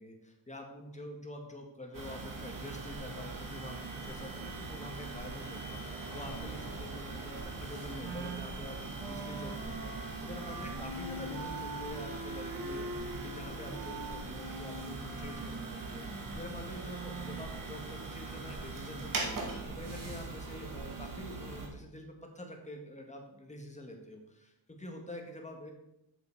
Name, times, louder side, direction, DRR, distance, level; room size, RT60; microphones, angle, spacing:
voice 1, 0.0-9.9 10.2-25.7, left 1 dB, 15° left, 2 dB, 1.5 m, -46 dB
sound 1, 1.9-21.7, right 3 dB, 50° right, 2.0 m, -41 dB
Wind instrument woodwind instrument, 8.0-17.4, right 2 dB, 70° right, 2.4 m, -44 dB
7.7 x 6.9 x 4.6 m, 0.86 s
wide cardioid pair, 130°, 43 cm